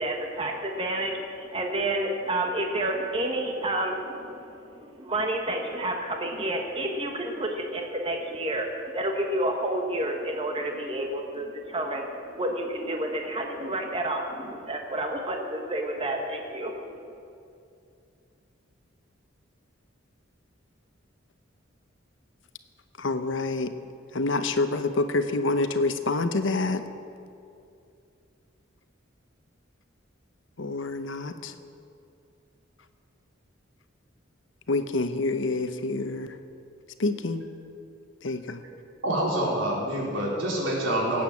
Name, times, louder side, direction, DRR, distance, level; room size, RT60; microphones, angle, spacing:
voice 1, 0.0-16.7, right 1 dB, 30° right, 2 dB, 1.3 m, -30 dB
voice 2, 23.0-23.7 24.1-26.8 30.6-31.5 34.7-36.3 37.0-37.4 38.2-38.6, left 3 dB, 70° left, 9 dB, 0.9 m, -27 dB
voice 3, 39.0-41.2, right 1 dB, 80° right, -3 dB, 4.0 m, -26 dB
18.0 x 8.7 x 7.3 m, 2.5 s
head